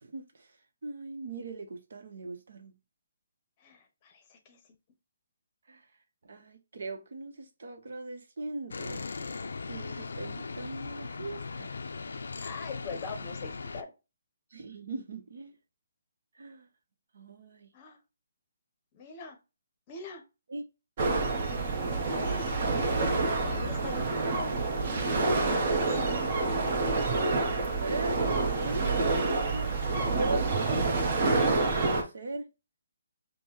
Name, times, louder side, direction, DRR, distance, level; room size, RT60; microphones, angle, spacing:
voice 1, 0.0-0.5 0.8-2.8 5.7-5.9 6.2-9.1 9.7-11.7 14.5-15.5 16.4-16.7 17.1-17.7 20.5-20.6 23.5-23.6 27.8-29.1 29.5-32.5, right 3 dB, 70° right, 0.8 m, -40 dB
voice 2, 3.6-4.6 12.4-13.9 17.7-18.0 18.9-19.4 19.9-20.2 21.6-22.5 23.4-24.5 25.2-26.0, left 4 dB, 25° left, 0.7 m, -43 dB
sound 1, 8.7-13.8, left 4 dB, 80° left, 0.4 m, -38 dB
sound 2, 21.0-32.0, right 3 dB, 40° right, 0.9 m, -28 dB
5.3 x 2.1 x 2.9 m
hypercardioid pair, 160°, 0 cm